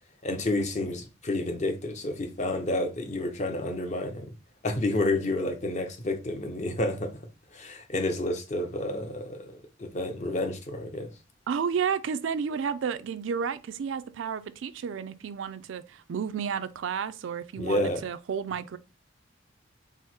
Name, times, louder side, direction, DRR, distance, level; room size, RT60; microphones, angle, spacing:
voice 1, 0.2-4.3 4.6-7.1 7.5-9.5 9.8-11.1 17.6-18.1, left 1 dB, 35° left, 0.7 m, -30 dB
voice 2, 11.5-18.8, right 6 dB, 75° right, 0.4 m, -31 dB
4.7 x 2.0 x 4.3 m
head